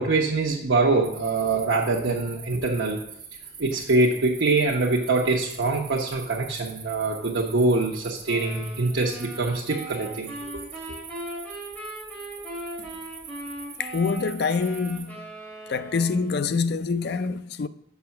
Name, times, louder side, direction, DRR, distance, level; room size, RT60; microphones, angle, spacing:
voice 1, 0.0-3.0 3.6-10.3, right 3 dB, 80° right, 0.9 m, -24 dB
sound 1, 1.0-15.0, right 6 dB, 45° right, 1.6 m, -44 dB
sound 2, 8.2-16.6, right 1 dB, 10° left, 3.1 m, -39 dB
voice 2, 13.8-15.3 15.7-17.7, left 4 dB, 55° left, 0.4 m, -26 dB
6.9 x 5.2 x 5.8 m
head